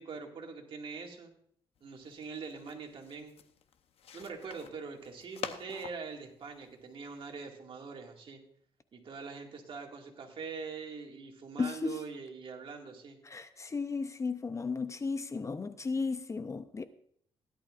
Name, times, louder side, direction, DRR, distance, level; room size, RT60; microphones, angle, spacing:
voice 1, 0.0-1.3 1.8-3.3 4.1-8.4 8.9-13.2, right 5 dB, 55° right, 2.1 m, -43 dB
sound 1, 1.8-7.3, left 8 dB, 75° left, 0.8 m, -47 dB
voice 2, 11.6-12.0 13.2-16.8, left 4 dB, 30° left, 0.6 m, -34 dB
16.5 x 11.5 x 2.5 m
cardioid pair, 110°, 10 cm